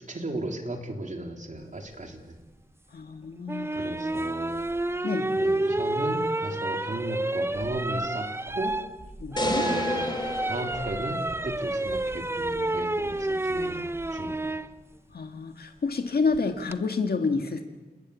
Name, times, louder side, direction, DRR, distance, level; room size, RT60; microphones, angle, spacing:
voice 1, 0.1-2.4 3.7-4.6 5.4-8.7 9.4-10.2 10.5-14.6, right 1 dB, 50° right, 3 dB, 3.7 m, -35 dB
voice 2, 2.9-3.9 5.0-5.4 9.2-9.6 15.1-17.6, left 4 dB, 85° left, 5 dB, 1.9 m, -29 dB
sound 1, 3.5-14.7 16.3-16.8, right 2 dB, 15° right, 0.8 m, -29 dB
sound 2, 9.4-11.7, left 1 dB, 30° left, 4.0 m, -31 dB
28.5 x 20.0 x 8.4 m, 1.2 s
wide cardioid pair, 90°, 16 cm